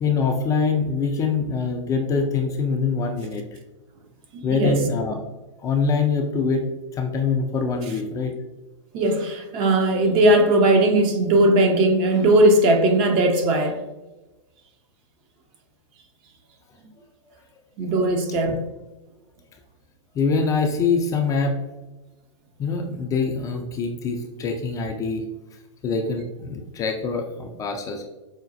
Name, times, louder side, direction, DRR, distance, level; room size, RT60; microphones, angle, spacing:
voice 1, 0.0-3.4 4.4-5.2 5.6-6.6 6.9-8.3 20.1-21.6 22.6-25.2 25.8-28.0, left 4 dB, 20° left, 0.4 m, -24 dB
voice 2, 4.3-4.8 8.9-13.8 17.8-18.6, right 1 dB, 35° right, 0.6 m, -18 dB
4.9 x 2.2 x 2.5 m
hypercardioid pair, 110°, 16 cm